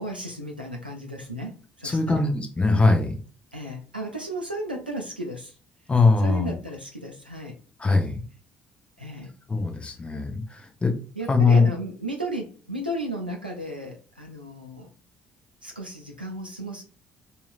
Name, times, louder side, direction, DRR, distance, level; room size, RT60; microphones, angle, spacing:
voice 1, 0.0-2.3 3.5-5.5 6.2-7.6 9.0-9.3 11.2-14.9 15.6-16.8, right 1 dB, 90° right, 1 dB, 0.4 m, -34 dB
voice 2, 1.8-3.2 5.9-6.5 7.8-8.2 9.5-10.9 11.3-11.7, left 3 dB, 20° left, 5 dB, 0.8 m, -21 dB
2.9 x 2.8 x 2.4 m, 0.38 s
figure-of-eight pair, 50°, 5 cm